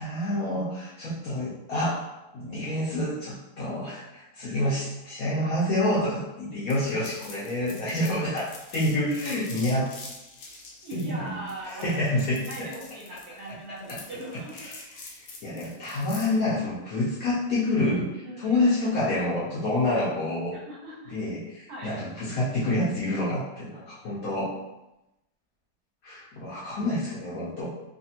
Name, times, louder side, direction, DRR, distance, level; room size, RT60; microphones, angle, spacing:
voice 1, 0.0-2.0 2.3-9.9 10.9-11.4 11.7-12.4 13.9-14.0 14.6-14.7 15.0-15.1 15.4-20.6 21.1-24.5 26.0-27.7, left 1 dB, 90° left, -8 dB, 0.7 m, -28 dB
sound 1, 6.7-16.4, left 3 dB, 70° left, 1.1 m, -45 dB
voice 2, 10.8-12.0 12.5-14.6 18.2-18.6 20.5-21.1 21.7-22.0, right 1 dB, 65° right, -6 dB, 1.0 m, -40 dB
3.3 x 2.4 x 2.7 m, 0.94 s
omnidirectional pair, 2.3 m